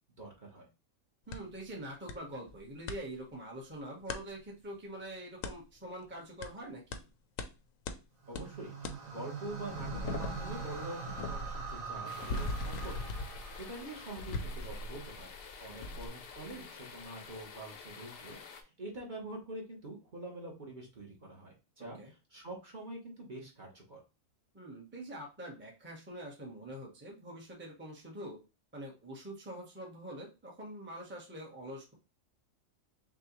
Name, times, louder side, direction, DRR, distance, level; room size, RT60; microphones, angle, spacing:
voice 1, 0.2-0.7 8.3-8.8 9.1-15.3 15.6-22.0 22.3-24.0, right 1 dB, 40° right, -2 dB, 1.3 m, -45 dB
sound 1, 1.3-1.4 2.1-2.2 2.5-3.0 4.1-4.2 5.4-5.6 6.4-6.5 6.9-7.0 7.4-7.5 7.9-8.0 8.3-8.5 8.8-9.0 9.4-15.4 15.8-16.1, left 2 dB, 80° left, 1.0 m, -39 dB
voice 2, 1.3-7.1 15.7-16.0 21.8-22.1 24.5-28.4 28.7-31.9, right 1 dB, 10° right, -1 dB, 1.0 m, -45 dB
sound 2, 8.2-14.5, right 5 dB, 65° right, 1.7 m, -43 dB
sound 3, 12.1-18.6, left 5 dB, 55° left, 0.8 m, -49 dB
5.9 x 2.4 x 3.0 m, 0.30 s
omnidirectional pair, 1.3 m